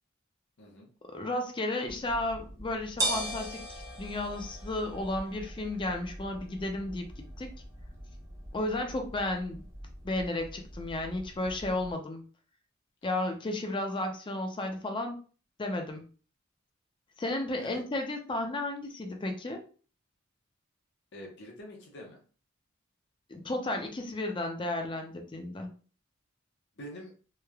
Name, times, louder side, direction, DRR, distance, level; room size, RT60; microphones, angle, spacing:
voice 1, 0.6-0.9 9.1-9.2 17.6-17.9 21.1-22.2 26.8-27.1, left 1 dB, 60° left, 0 dB, 0.7 m, -45 dB
voice 2, 1.1-7.5 8.5-9.6 10.0-12.2 13.0-15.2 15.6-16.1 17.2-19.6 23.3-25.7, left 2 dB, 25° left, 4 dB, 0.4 m, -33 dB
sound 1, 1.9-11.9, right 1 dB, 15° right, 0.7 m, -40 dB
3.0 x 2.0 x 2.3 m, 0.39 s
head